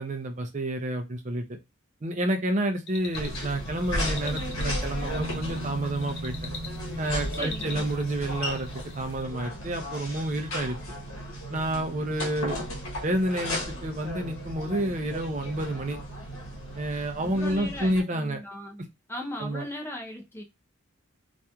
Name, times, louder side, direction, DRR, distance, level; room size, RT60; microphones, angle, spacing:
voice 1, 0.0-1.4 2.0-6.3 7.0-8.7 9.0-10.8 11.5-12.6 13.0-16.0 16.8-18.4 19.4-19.6, right 1 dB, 35° right, 0.5 m, -29 dB
sound 1, 2.9-9.2, left 4 dB, 55° left, 0.7 m, -44 dB
sound 2, 3.1-18.0, equal, 80° left, 0.9 m, -35 dB
sound 3, 5.2-12.8 15.8-15.9, equal, 70° right, 0.7 m, -42 dB
voice 2, 7.3-7.9 17.2-18.8 19.1-20.4, left 1 dB, 10° left, 0.5 m, -38 dB
2.9 x 2.5 x 2.2 m
head